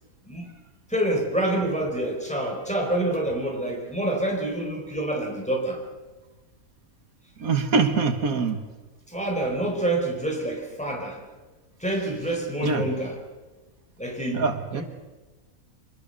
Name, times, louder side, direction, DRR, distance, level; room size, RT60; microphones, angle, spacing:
voice 1, 0.9-5.8 9.1-11.2 11.8-13.1 14.0-14.4 14.7-14.8, right 1 dB, 5° left, 0 dB, 4.7 m, -27 dB
voice 2, 7.4-8.6 12.6-12.9 14.3-14.8, right 4 dB, 80° right, 7 dB, 1.9 m, -24 dB
25.5 x 20.0 x 6.8 m, 1.2 s
omnidirectional pair, 1.5 m